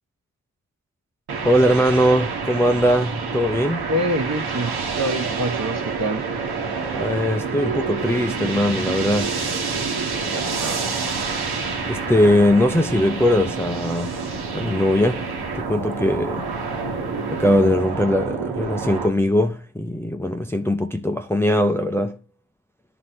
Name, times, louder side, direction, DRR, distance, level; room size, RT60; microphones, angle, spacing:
sound 1, 1.3-19.1, right 5 dB, 80° right, 1.4 m, -28 dB
voice 1, 1.4-3.9 6.8-9.3 11.9-14.3 14.5-15.3 15.5-16.5 17.3-22.2, left 1 dB, 5° left, 0.6 m, -20 dB
sound 2, 3.3-5.1 5.4-8.7 9.0-9.1 9.2-9.8 10.3-12.3 12.8-14.4, right 7 dB, 60° right, 0.9 m, -40 dB
voice 2, 3.9-6.2 10.3-10.8, right 1 dB, 45° right, 1.3 m, -26 dB
sound 3, 8.0-17.8, left 10 dB, 75° left, 0.7 m, -40 dB
9.6 x 3.4 x 5.7 m
cardioid pair, 60°, 38 cm